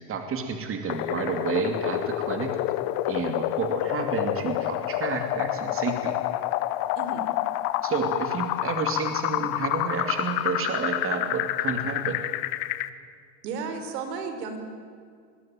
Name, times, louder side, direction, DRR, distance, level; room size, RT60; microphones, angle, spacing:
voice 1, 0.1-2.5 3.1-6.2 7.8-12.2, right 5 dB, 25° right, 5 dB, 2.7 m, -30 dB
sound 1, 0.9-12.9, left 15 dB, 55° left, 1.5 m, -28 dB
voice 2, 13.4-14.6, right 4 dB, 75° right, 7 dB, 5.0 m, -33 dB
25.5 x 21.5 x 9.1 m, 2.1 s
supercardioid pair, 125°, 49 cm